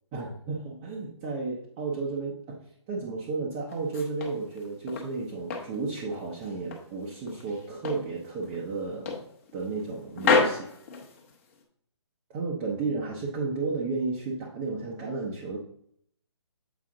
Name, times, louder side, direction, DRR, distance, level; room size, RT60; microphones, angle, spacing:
voice 1, 0.1-2.6 2.9-10.6 12.3-15.6, right 3 dB, 15° right, -3 dB, 0.7 m, -33 dB
sound 1, 3.7-5.1 5.5-6.9 7.3-8.1 8.4-8.6 9.1-9.9 10.2-11.6, left 4 dB, 25° left, 1.0 m, -29 dB
7.7 x 4.8 x 3.7 m, 0.67 s
hypercardioid pair, 165°, 16 cm